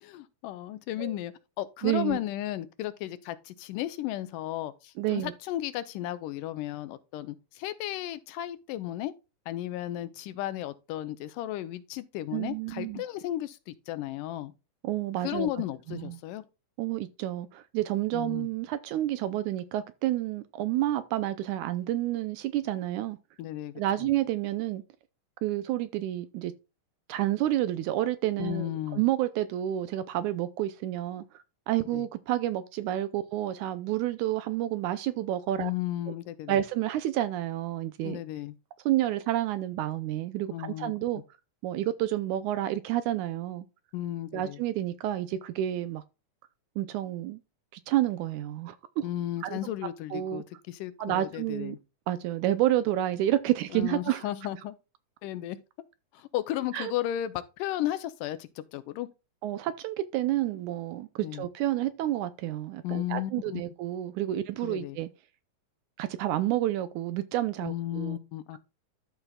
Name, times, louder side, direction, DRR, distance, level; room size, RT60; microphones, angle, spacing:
voice 1, 0.0-9.1 9.5-14.5 15.2-16.4 18.1-18.5 23.4-23.7 24.0-24.1 28.4-29.0 31.9-32.1 35.6-36.6 38.0-38.6 40.5-40.9 43.9-44.6 49.0-51.8 53.7-54.7 55.2-55.6 56.1-59.1 61.2-61.5 62.8-63.6 64.6-65.0 67.6-68.6, left 13 dB, 80° left, 2.3 m, -34 dB
voice 2, 1.8-2.2 5.0-5.3 12.3-13.0 14.8-15.5 15.9-16.2 16.8-23.2 23.8-24.8 25.4-26.5 27.1-35.7 36.5-38.2 38.9-41.2 41.6-43.7 44.3-46.0 46.8-47.4 47.7-49.1 49.4-49.6 50.1-50.4 51.0-51.8 52.1-54.3 56.7-56.9 59.4-65.1 66.0-68.2, right 13 dB, 80° right, 1.9 m, -29 dB
13.5 x 5.5 x 2.3 m
omnidirectional pair, 3.8 m